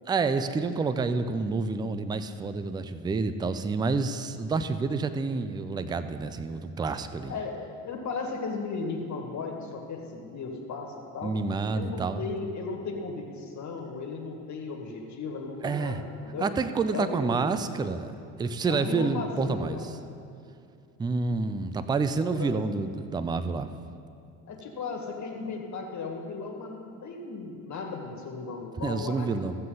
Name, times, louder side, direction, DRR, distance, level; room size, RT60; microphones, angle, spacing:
voice 1, 0.1-7.3 11.2-12.2 15.6-16.0 16.4-19.8 21.0-23.7 28.8-29.6, right 4 dB, 10° right, 11 dB, 0.4 m, -28 dB
voice 2, 7.2-11.3 11.7-16.5 16.9-17.6 18.7-19.9 22.3-22.5 24.5-29.6, left 4 dB, 45° left, 2 dB, 1.8 m, -36 dB
15.0 x 7.7 x 3.9 m, 2.5 s
supercardioid pair, 85°, 41 cm